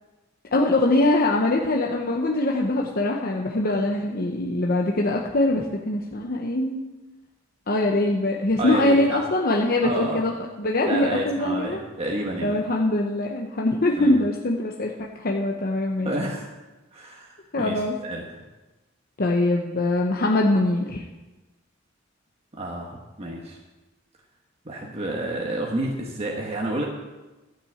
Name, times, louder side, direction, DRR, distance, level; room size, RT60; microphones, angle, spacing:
voice 1, 0.5-6.8 7.7-10.3 10.6-11.8 12.4-16.1 17.5-18.0 19.2-21.0, left 2 dB, 50° left, 0 dB, 0.9 m, -23 dB
voice 2, 8.6-9.2 9.8-10.2 10.8-12.6 14.0-14.2 16.0-16.5 16.9-18.2 22.5-23.6 24.6-26.8, right 1 dB, 30° right, -2 dB, 1.3 m, -30 dB
13.0 x 6.1 x 7.9 m, 1.1 s
head